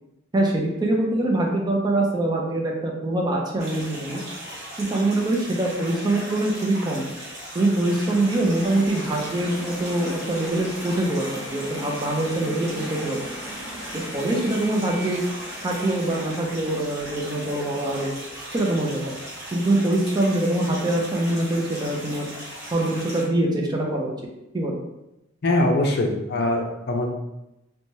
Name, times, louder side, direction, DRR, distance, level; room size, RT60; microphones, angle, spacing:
voice 1, 0.3-4.2 4.8-7.1 7.5-13.2 13.9-15.2 15.6-18.1 18.5-19.0 19.5-22.3 22.7-24.1 24.5-24.8, right 1 dB, 20° right, 0 dB, 0.4 m, -24 dB
sound 1, 3.6-23.2, right 1 dB, 55° right, 1.1 m, -38 dB
sound 2, 7.7-18.7, equal, 5° right, 0.8 m, -39 dB
voice 2, 25.4-27.1, left 1 dB, 55° left, 1 dB, 0.4 m, -22 dB
3.0 x 2.1 x 2.7 m, 0.92 s
head